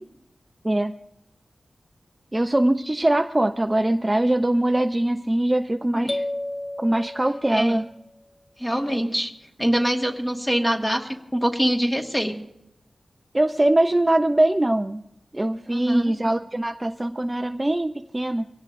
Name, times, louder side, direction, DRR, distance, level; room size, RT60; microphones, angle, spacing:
voice 1, 2.3-6.2 6.8-7.9 13.3-15.0 15.3-18.5, right 1 dB, 20° right, 6 dB, 0.5 m, -22 dB
sound 1, 6.1-8.0, left 1 dB, 40° left, 0.7 m, -32 dB
voice 2, 7.5-7.8 8.6-9.3 9.6-12.4 15.7-16.1, equal, 10° left, 2 dB, 1.6 m, -24 dB
24.0 x 17.0 x 2.5 m, 0.80 s
wide cardioid pair, 100°, 0 cm